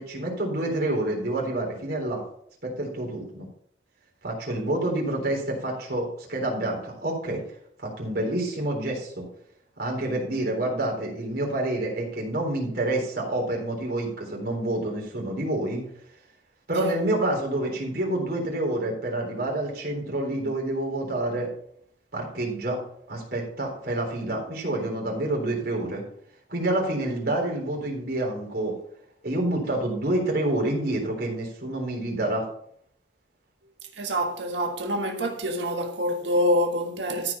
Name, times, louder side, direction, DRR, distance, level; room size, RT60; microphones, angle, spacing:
voice 1, 0.0-2.2 2.6-3.5 4.2-7.4 7.8-9.3 9.8-15.8 16.7-21.5 22.1-22.8 23.1-26.0 26.5-28.8 29.2-32.5, right 1 dB, 55° right, 3.8 m, -28 dB
voice 2, 34.0-37.3, equal, 75° right, 1.6 m, -26 dB
13.5 x 4.9 x 5.5 m
head